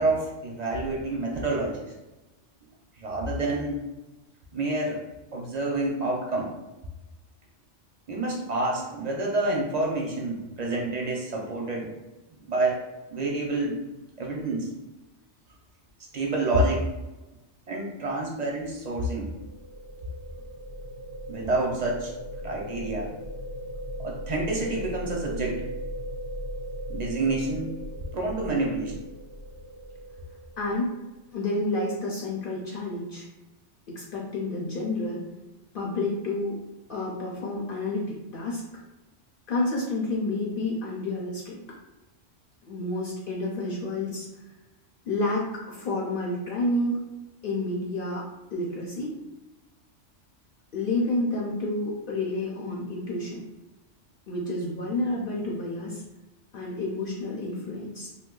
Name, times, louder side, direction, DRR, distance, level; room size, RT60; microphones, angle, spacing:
voice 1, 0.0-1.9 3.0-3.8 4.5-5.0 5.3-6.5 8.1-11.9 12.5-12.8 13.1-13.8 14.2-14.7 16.1-16.9 17.7-19.3 21.3-22.1 22.4-23.1 24.0-25.7 26.9-27.7 28.1-28.9, right 2 dB, 45° right, -1 dB, 0.5 m, -28 dB
sound 1, 19.2-31.0, equal, 15° left, 0.4 m, -38 dB
voice 2, 30.6-30.9 31.3-33.3 33.9-35.2 35.7-36.6 36.9-38.6 39.5-41.6 42.7-44.2 45.1-47.0 47.4-48.2 48.5-49.1 50.7-53.4 54.3-56.0 56.5-58.1, left 2 dB, 55° left, -4 dB, 0.7 m, -29 dB
2.6 x 2.2 x 3.7 m, 1.0 s
omnidirectional pair, 1.2 m